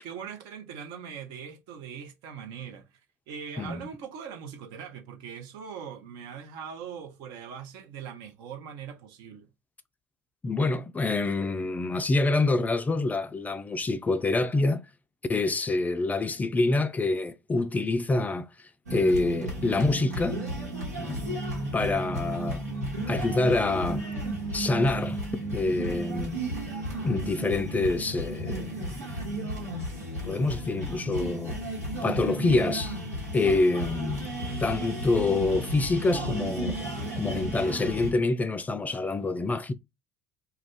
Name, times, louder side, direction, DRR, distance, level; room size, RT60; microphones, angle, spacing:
voice 1, 0.0-2.9 3.3-9.5, right 7 dB, 60° right, 0.7 m, -41 dB
voice 2, 3.6-3.9 10.4-14.8 15.3-20.4 21.0-21.4 21.7-22.6 23.1-24.1 24.5-25.2 25.5-26.4 27.0-28.7 29.0-29.1 30.2-31.6 32.0-33.0 33.3-34.3 34.6-36.8 37.2-39.7, left 2 dB, 20° left, 0.3 m, -26 dB
sound 1, 18.9-38.1, right 1 dB, 85° right, 1.1 m, -33 dB
2.4 x 2.2 x 3.6 m
figure-of-eight pair, 65°, 8 cm